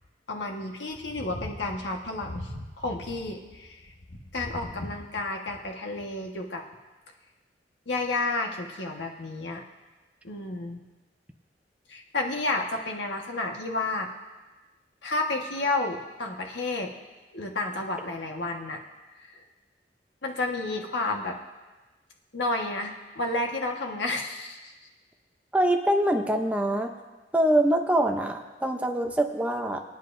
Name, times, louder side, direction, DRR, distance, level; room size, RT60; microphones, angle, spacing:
voice 1, 0.3-6.6 7.9-9.6 10.2-10.8 11.9-14.1 15.0-16.9 17.3-18.8 19.2-19.4 20.2-21.4 22.3-24.7, left 2 dB, 85° left, 2 dB, 1.4 m, -31 dB
voice 2, 25.5-26.9 27.3-29.8, right 1 dB, 10° right, 3 dB, 0.7 m, -24 dB
23.5 x 9.5 x 2.6 m, 1.2 s
head